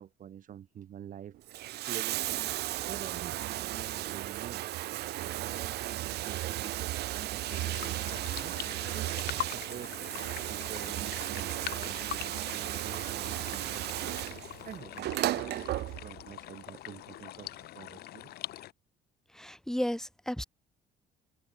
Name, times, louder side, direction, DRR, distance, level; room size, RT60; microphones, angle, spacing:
voice 1, 0.0-4.6 5.4-17.5 17.7-18.3, right 9 dB, 50° right, 3.6 m, -47 dB
Bathtub (filling or washing), 1.3-16.3 17.4-17.5, right 16 dB, 75° right, 3.5 m, -35 dB
sound 1, 7.4-18.7, left 14 dB, 70° left, 1.6 m, -43 dB
voice 2, 19.4-20.4, equal, 5° left, 1.3 m, -33 dB
cardioid pair, 110°, 17 cm